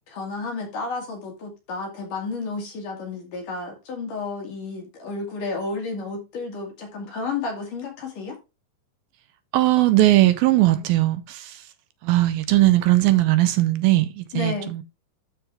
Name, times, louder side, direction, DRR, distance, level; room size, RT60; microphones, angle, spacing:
voice 1, 0.1-8.4 14.3-14.7, left 3 dB, 55° left, 3.3 m, -31 dB
voice 2, 9.5-11.6 12.0-14.8, right 16 dB, 80° right, 2.3 m, -19 dB
12.5 x 4.7 x 3.4 m
omnidirectional pair, 4.7 m